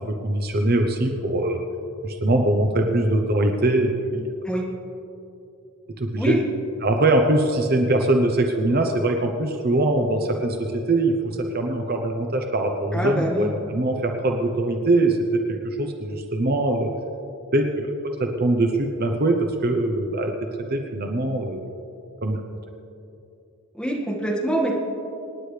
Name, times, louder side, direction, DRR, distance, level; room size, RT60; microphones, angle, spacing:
voice 1, 0.0-1.6 2.0-4.2 6.0-6.4 6.8-11.1 11.5-15.2 15.5-16.9 17.5-17.9 18.4-20.3 20.7-21.7 22.2-22.4, right 2 dB, 45° right, 3 dB, 0.8 m, -22 dB
voice 2, 12.9-13.5 23.8-24.7, right 1 dB, 5° left, -3 dB, 1.9 m, -24 dB
26.5 x 9.9 x 3.4 m, 2.8 s
head